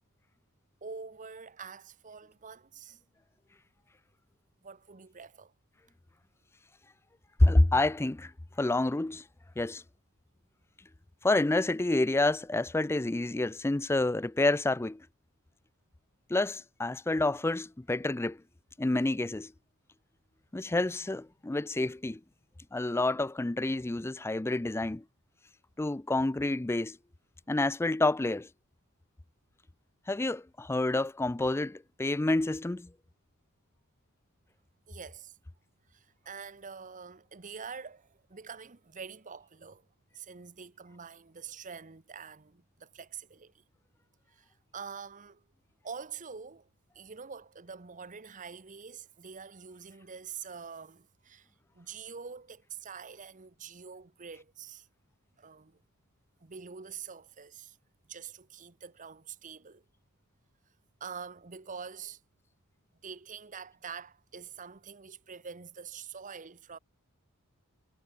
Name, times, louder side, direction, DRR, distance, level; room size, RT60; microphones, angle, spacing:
voice 1, 0.8-3.0 4.6-5.5 34.9-35.4 35.9-39.9 40.1-43.6 44.3-45.4 45.8-46.7 46.9-54.9 55.4-55.8 56.4-57.8 58.1-59.8 61.0-62.2 63.0-66.8, right 6 dB, 35° right, 1.0 m, -45 dB
voice 2, 7.4-8.3 8.6-9.2 9.6-9.8 11.2-15.1 16.3-18.4 18.8-19.5 20.5-22.2 22.7-25.0 25.8-27.0 27.5-28.5 30.1-32.9, left 2 dB, 10° left, 0.4 m, -28 dB
head